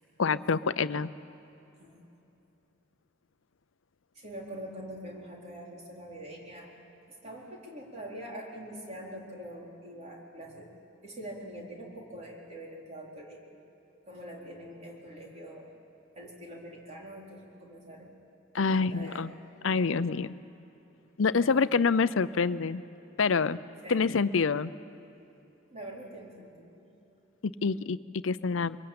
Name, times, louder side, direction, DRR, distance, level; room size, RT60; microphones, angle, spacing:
voice 1, 0.2-1.1 18.5-19.3 19.6-20.3 21.2-22.8 23.2-23.6 23.9-24.7 27.4-28.0 28.2-28.8, left 5 dB, 70° left, 15 dB, 0.6 m, -26 dB
voice 2, 4.1-6.7 7.2-10.7 11.0-13.6 14.1-15.8 16.1-18.2 18.7-19.8 21.3-21.6 23.8-24.1 25.7-26.9, right 1 dB, 35° right, -2 dB, 4.2 m, -44 dB
23.0 x 23.0 x 8.8 m, 2.9 s
head